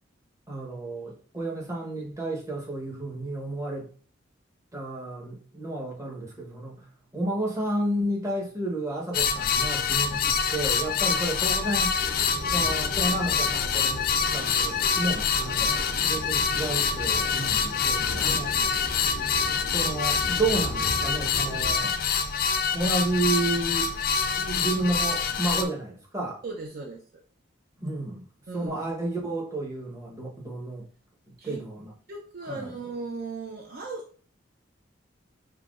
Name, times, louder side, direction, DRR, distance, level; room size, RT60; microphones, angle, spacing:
voice 1, 0.5-3.9 4.7-6.9 7.1-11.9 12.5-14.1 14.3-15.7 16.0-18.5 19.7-22.0 22.7-23.9 24.4-26.4 27.8-28.3 28.5-30.9 31.3-31.9 32.5-32.6, right 2 dB, 15° right, -3 dB, 0.9 m, -31 dB
sound 1, 9.1-25.6, left 6 dB, 50° left, 0.3 m, -26 dB
sound 2, 12.0-21.8, equal, 85° right, 1.2 m, -38 dB
voice 2, 18.1-18.6 26.4-27.2 28.5-28.7 31.4-31.6 32.1-34.2, right 3 dB, 50° right, 1 dB, 0.5 m, -38 dB
5.6 x 2.2 x 2.4 m, 0.43 s
head